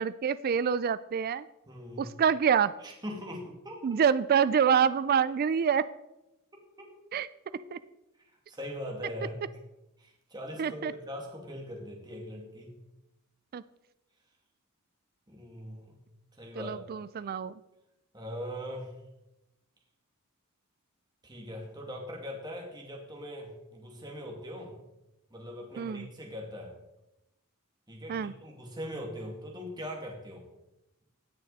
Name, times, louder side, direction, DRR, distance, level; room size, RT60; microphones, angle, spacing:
voice 1, 0.0-1.5 2.0-2.7 3.8-5.8 7.1-7.3 7.7-7.8 10.6-10.9 13.5-13.6 16.6-17.5 25.8-26.1 28.1-28.3, right 7 dB, 45° right, 16 dB, 0.3 m, -26 dB
voice 2, 1.7-2.1 2.8-3.8 6.5-6.9 8.5-9.4 10.0-12.7 15.3-15.9 16.4-16.8 18.1-18.9 21.2-24.8 25.3-26.7 27.9-30.5, equal, 20° right, 0 dB, 2.4 m, -41 dB
19.5 x 6.7 x 4.1 m, 0.93 s
head